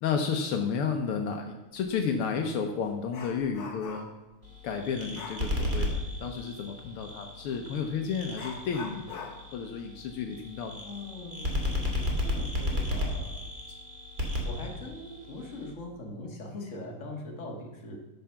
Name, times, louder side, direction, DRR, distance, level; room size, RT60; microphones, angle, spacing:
voice 1, 0.0-4.1 4.6-10.9, left 6 dB, 80° left, 4 dB, 1.2 m, -32 dB
Dog, 1.9-2.0 2.4-4.3 5.1-5.5 7.5-7.6 8.3-11.6 11.9-12.0 12.6-12.7 13.3-13.7 14.1-14.4, left 4 dB, 50° left, 1.5 m, -45 dB
sound 1, 4.4-15.7, left 1 dB, 20° right, 1.6 m, -34 dB
voice 2, 10.8-13.4 14.4-18.0, left 1 dB, 30° left, 0 dB, 1.8 m, -41 dB
12.5 x 6.6 x 5.8 m, 1.1 s
omnidirectional pair, 3.6 m